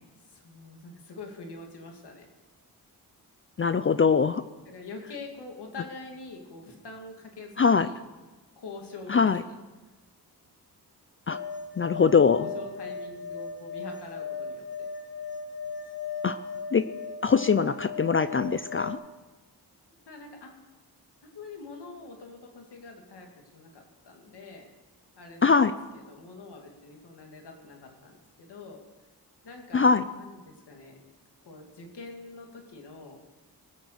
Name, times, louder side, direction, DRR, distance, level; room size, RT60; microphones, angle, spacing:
voice 1, 0.3-2.3 4.7-8.0 8.6-9.3 11.3-11.4 12.4-14.9 19.9-20.6 21.2-24.7 25.2-25.7 25.9-28.8 29.4-29.8 30.1-31.0 31.5-33.2, left 3 dB, 80° left, 2 dB, 2.4 m, -44 dB
voice 2, 3.6-4.4 7.6-7.9 9.1-9.4 11.3-11.4 11.8-12.4 16.2-16.4 16.7-16.9 17.2-19.0 25.4-25.7 29.7-30.0, left 5 dB, 35° left, 13 dB, 0.4 m, -22 dB
sound 1, 11.3-18.9, left 5 dB, 60° left, 1.8 m, -37 dB
19.5 x 7.1 x 6.6 m, 1.2 s
wide cardioid pair, 90°, 40 cm